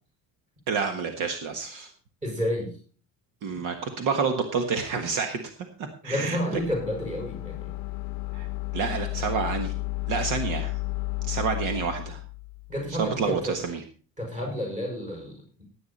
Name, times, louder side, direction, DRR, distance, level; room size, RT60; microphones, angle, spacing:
voice 1, 0.7-1.9 3.4-6.4 8.3-8.5 8.7-9.7 10.1-10.7 11.3-12.2 13.0-13.8, right 5 dB, 65° right, 6 dB, 1.6 m, -29 dB
voice 2, 2.2-2.7 6.0-7.7 12.7-13.6 14.2-15.6, equal, 20° right, 0 dB, 6.1 m, -30 dB
sound 1, 6.5-13.6, left 20 dB, 85° left, 0.6 m, -33 dB
16.5 x 9.4 x 4.2 m, 0.39 s
cardioid pair, 165°, 33 cm